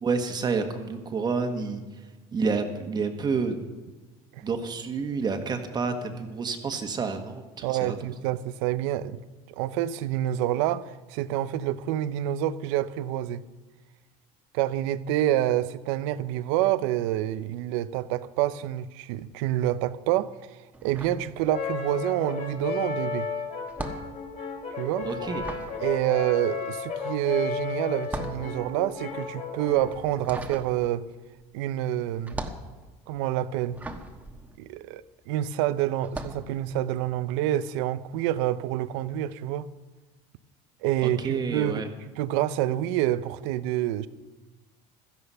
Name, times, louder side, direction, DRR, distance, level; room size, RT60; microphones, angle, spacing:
voice 1, 0.0-1.8 2.3-3.6 4.4-7.9 25.0-25.4 41.0-41.9, right 5 dB, 30° right, 1.5 m, -29 dB
voice 2, 7.6-9.2 9.5-13.4 14.5-23.3 24.8-25.1 25.8-31.1 31.5-32.4 33.1-33.8 34.6-39.7 40.8-44.1, right 13 dB, 90° right, 0.7 m, -27 dB
sound 1, 20.7-22.0 22.2-35.4 36.0-36.5, right 2 dB, 10° right, 1.3 m, -40 dB
Brass instrument, 21.5-30.1, left 5 dB, 50° left, 3.3 m, -33 dB
16.0 x 13.5 x 5.7 m
cardioid pair, 130°, 15 cm